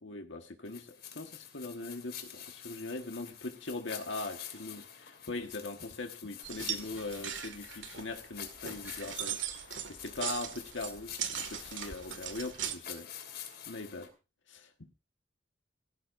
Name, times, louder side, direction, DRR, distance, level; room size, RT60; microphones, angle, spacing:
voice 1, 0.0-9.4 9.9-13.1 13.7-14.1 14.5-14.9, left 2 dB, 85° left, 5 dB, 1.6 m, -41 dB
sound 1, 0.7-14.1, left 9 dB, 55° left, 2.9 m, -48 dB
sound 2, 6.4-12.7, right 9 dB, 85° right, 2.1 m, -39 dB
17.5 x 15.5 x 2.7 m, 0.30 s
head